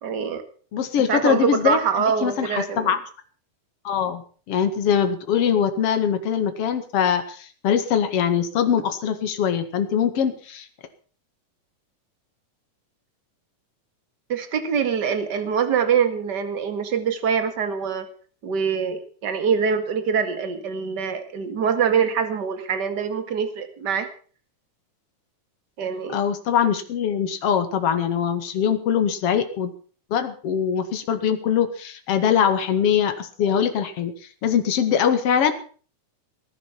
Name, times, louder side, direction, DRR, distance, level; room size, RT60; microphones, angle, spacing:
voice 1, 0.0-0.4 1.1-2.9 14.3-18.1 18.4-24.1 25.8-26.2, right 7 dB, 35° right, 9 dB, 2.1 m, -24 dB
voice 2, 0.7-1.8 2.2-3.0 3.8-10.7 26.1-29.7 30.1-34.1 34.4-35.5, left 8 dB, 50° left, 9 dB, 2.5 m, -22 dB
19.5 x 11.0 x 5.9 m, 0.42 s
omnidirectional pair, 3.8 m